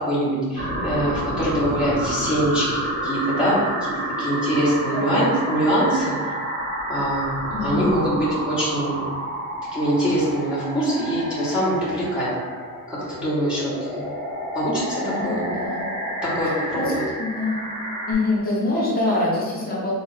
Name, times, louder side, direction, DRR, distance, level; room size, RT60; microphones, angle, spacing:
voice 1, 0.0-2.7 3.0-6.2 6.9-9.0 9.7-12.3 12.9-14.1 14.5-15.5 16.2-17.0, right 1 dB, 5° right, -10 dB, 0.8 m, -23 dB
Real sound of Saturn, 0.6-18.1, right 1 dB, 30° right, 1.1 m, -30 dB
voice 2, 7.5-7.8 15.0-15.8 16.8-16.9 17.2-17.6 18.1-19.9, left 2 dB, 25° left, -6 dB, 0.9 m, -24 dB
3.7 x 2.4 x 3.9 m, 1.5 s
cardioid pair, 175°, 34 cm